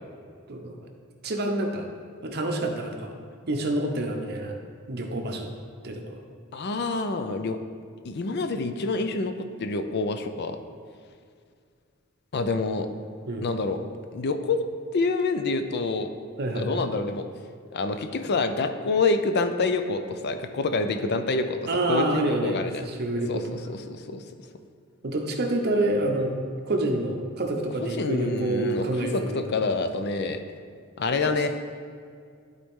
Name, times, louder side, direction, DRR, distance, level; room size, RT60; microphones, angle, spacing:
voice 1, 0.5-0.8 1.2-1.9 2.2-3.1 3.5-4.6 4.9-5.5 5.8-6.2 13.3-13.5 16.4-16.7 21.7-23.6 25.0-26.3 26.6-29.6 31.2-31.4, right 2 dB, 50° right, 3 dB, 0.9 m, -27 dB
voice 2, 6.5-7.6 8.0-9.3 9.6-10.6 12.3-12.9 13.4-13.8 14.1-14.7 14.9-16.1 16.6-17.3 17.7-21.6 21.9-22.9 23.3-24.2 28.0-30.4 31.0-31.5, left 3 dB, 55° left, 8 dB, 0.5 m, -27 dB
11.5 x 4.1 x 3.7 m, 2.2 s
head